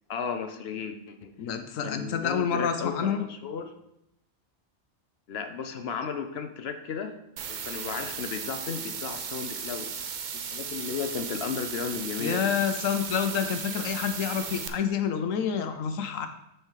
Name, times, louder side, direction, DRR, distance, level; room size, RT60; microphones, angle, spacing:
voice 1, 0.1-1.3 1.8-3.7 5.3-7.2 7.5-9.9 10.3-12.5 13.7-13.9, left 6 dB, 60° left, 8 dB, 0.9 m, -34 dB
voice 2, 1.4-3.2 12.2-16.3, left 7 dB, 90° left, 8 dB, 1.2 m, -28 dB
sound 1, 7.4-14.7, right 6 dB, 50° right, 0.6 m, -36 dB
6.4 x 4.5 x 6.5 m, 0.84 s
omnidirectional pair, 1.3 m